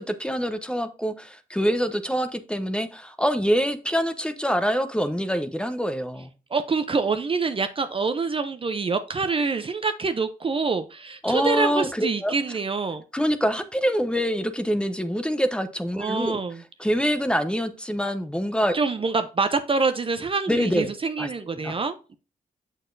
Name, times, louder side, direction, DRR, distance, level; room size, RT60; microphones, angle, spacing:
voice 1, 0.0-6.3 11.2-12.3 13.1-16.4 16.8-18.8 20.5-20.9 21.2-21.3 21.6-21.8, equal, 5° left, 0.7 m, -25 dB
voice 2, 6.5-13.0 16.0-16.6 18.7-22.2, right 4 dB, 35° right, 0.6 m, -26 dB
6.6 x 6.3 x 2.6 m
cardioid pair, 75°, 16 cm